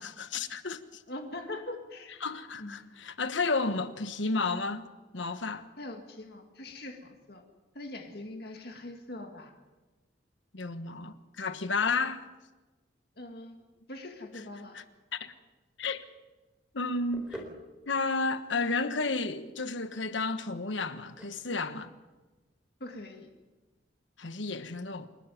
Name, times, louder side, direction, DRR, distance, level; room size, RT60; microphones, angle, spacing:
voice 1, 0.0-1.0 2.2-4.9 5.1-5.7 10.5-12.2 15.1-15.3 15.8-16.0 16.7-17.4 17.9-21.9 24.2-25.1, left 3 dB, 80° left, 1.3 m, -32 dB
voice 2, 1.1-2.1 2.6-2.9 5.8-7.4 7.7-9.5 11.9-12.0 13.2-14.8 22.8-23.3, left 2 dB, 55° left, 2.2 m, -42 dB
sound 1, 16.0-23.7, equal, 5° right, 3.8 m, -51 dB
28.0 x 12.5 x 9.3 m
head